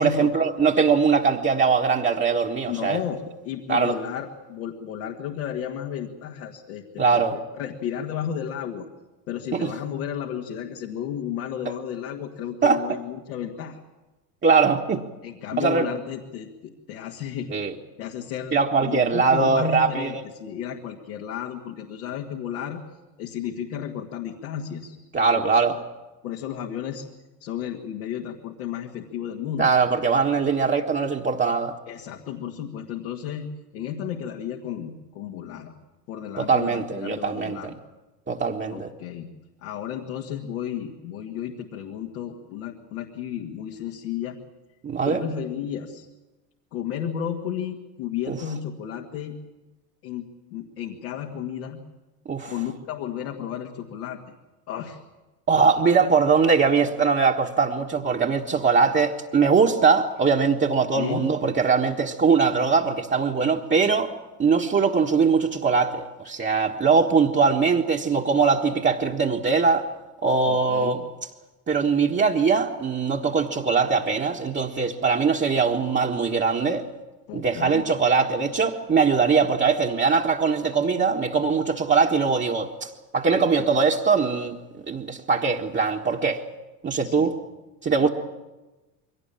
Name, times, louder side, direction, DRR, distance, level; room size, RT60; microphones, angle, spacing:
voice 1, 0.0-3.0 3.7-3.9 7.0-7.4 9.5-9.7 12.6-12.8 14.4-15.0 15.6-15.9 17.5-17.7 18.5-20.2 25.1-25.8 29.6-31.7 36.4-37.7 38.3-38.9 44.8-45.2 48.3-48.4 52.3-52.5 55.5-64.1 64.4-69.9 70.2-71.0 71.7-76.8 77.3-84.6 84.9-86.4 86.8-87.3 87.8-88.1, right 5 dB, 25° right, -1 dB, 1.5 m, -21 dB
voice 2, 2.7-8.9 9.3-13.8 15.2-17.5 18.0-22.8 23.2-25.0 25.4-25.6 26.2-27.0 27.4-29.7 31.9-33.5 33.7-35.7 36.1-37.7 38.7-39.3 39.6-44.4 45.1-46.1 46.7-49.4 50.0-51.8 52.5-54.3 54.7-55.0 60.9-61.3 70.5-71.0 77.3-77.9 87.0-87.3 88.0-88.1, left 9 dB, 70° left, 1 dB, 2.0 m, -33 dB
23.0 x 18.0 x 8.9 m, 1.1 s
figure-of-eight pair, 70°, 48 cm